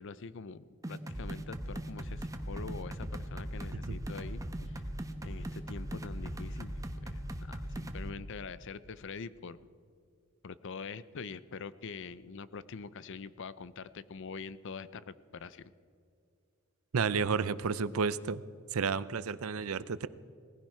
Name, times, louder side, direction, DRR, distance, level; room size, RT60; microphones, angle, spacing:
voice 1, 0.0-4.8 5.2-6.7 7.0-9.6 10.4-15.7, left 5 dB, 60° left, 16 dB, 0.6 m, -44 dB
sound 1, 0.8-8.1, equal, 15° right, 1.0 m, -39 dB
voice 2, 16.9-18.4 18.7-20.1, right 5 dB, 85° right, 17 dB, 0.6 m, -31 dB
19.5 x 15.5 x 4.5 m, 2.3 s
head